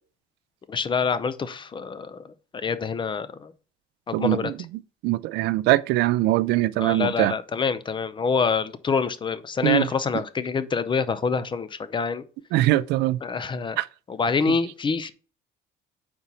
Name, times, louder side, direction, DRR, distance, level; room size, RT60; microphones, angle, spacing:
voice 1, 0.7-2.2 2.6-3.5 4.1-4.5 6.8-12.2 13.2-13.8 14.1-15.1, left 5 dB, 30° left, 0.6 m, -26 dB
voice 2, 4.1-4.5 5.0-7.3 9.6-9.9 12.5-13.2 13.8-13.9, right 16 dB, 85° right, 0.4 m, -22 dB
4.4 x 3.9 x 5.6 m
cardioid pair, 110°, 17 cm